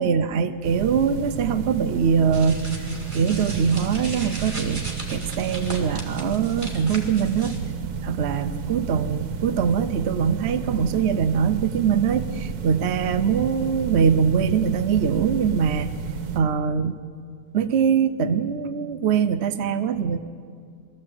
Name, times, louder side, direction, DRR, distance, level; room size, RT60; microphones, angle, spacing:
voice 1, 0.0-7.6 8.0-15.9 16.3-17.0 17.5-20.2, right 7 dB, 55° right, 9 dB, 0.8 m, -23 dB
sound 1, 0.6-16.4, right 7 dB, 75° right, 1.5 m, -31 dB
sound 2, 2.3-7.6, right 1 dB, 20° right, 3.0 m, -37 dB
22.0 x 14.0 x 8.6 m, 2.3 s
omnidirectional pair, 1.6 m